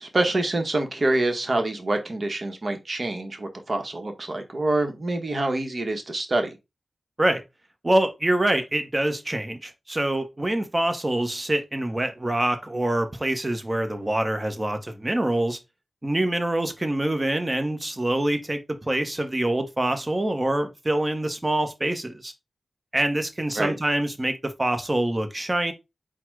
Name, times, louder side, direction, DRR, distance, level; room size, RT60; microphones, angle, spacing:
voice 1, 0.0-6.6 23.6-23.7, right 2 dB, 55° right, 1.2 m, -26 dB
voice 2, 7.8-15.6 16.0-22.3 22.9-25.7, right 1 dB, 30° right, 1.1 m, -25 dB
4.3 x 2.4 x 4.6 m
cardioid pair, 40°, 0 cm